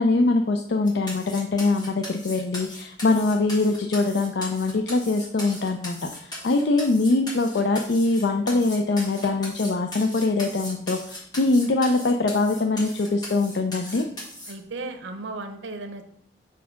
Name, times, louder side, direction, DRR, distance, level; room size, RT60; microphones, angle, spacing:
voice 1, 0.0-14.1, left 3 dB, 65° left, 5 dB, 0.4 m, -23 dB
sound 1, 0.9-14.5, left 1 dB, 25° left, 1.9 m, -38 dB
voice 2, 14.5-16.0, right 2 dB, 85° right, 6 dB, 0.7 m, -35 dB
4.7 x 4.3 x 5.6 m, 0.70 s
head